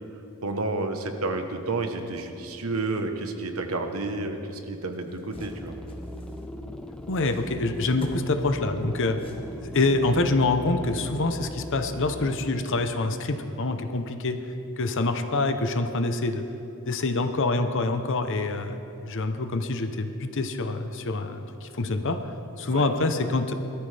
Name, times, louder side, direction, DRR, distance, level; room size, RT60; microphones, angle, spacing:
voice 1, 0.4-5.7 22.7-22.8, right 2 dB, 70° right, 6 dB, 1.2 m, -30 dB
sound 1, 4.8-9.9, equal, 25° left, 1.4 m, -48 dB
sound 2, 5.4-12.5, equal, 5° left, 0.6 m, -39 dB
voice 2, 7.1-9.2 9.6-14.4 14.8-16.4 16.9-22.2 22.6-23.5, left 2 dB, 60° left, 8 dB, 0.9 m, -26 dB
20.5 x 13.5 x 3.4 m, 2.9 s
head